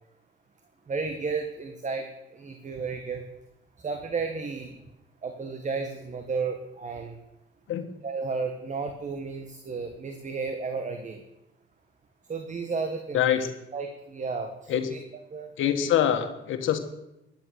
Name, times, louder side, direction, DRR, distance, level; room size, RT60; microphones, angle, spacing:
voice 1, 0.9-3.2 3.8-4.8 5.2-7.2 8.0-11.2 12.3-13.3 13.7-15.0 15.3-15.9, right 4 dB, 40° right, 6 dB, 1.6 m, -33 dB
voice 2, 13.1-13.5 14.7-14.9 15.6-16.8, left 10 dB, 80° left, 7 dB, 1.5 m, -24 dB
14.0 x 10.5 x 6.4 m, 0.89 s
cardioid pair, 90°, 20 cm